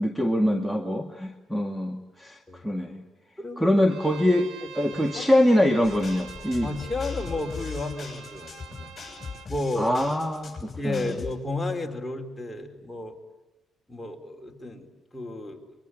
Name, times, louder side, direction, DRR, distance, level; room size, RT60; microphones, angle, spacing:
voice 1, 0.0-3.0 3.6-4.5 4.7-6.7 9.8-11.2, left 1 dB, 5° right, 6 dB, 2.0 m, -24 dB
voice 2, 3.4-3.7 4.9-5.3 6.6-8.9 9.5-9.9 10.8-13.2 13.9-14.9 15.1-15.6, left 2 dB, 15° left, 2 dB, 4.1 m, -32 dB
Bowed string instrument, 3.8-9.5, right 8 dB, 80° right, 2.4 m, -45 dB
sound 1, 5.8-11.3, left 5 dB, 30° left, 7.4 m, -39 dB
24.0 x 23.0 x 10.0 m, 1.0 s
cardioid pair, 90°, 0 cm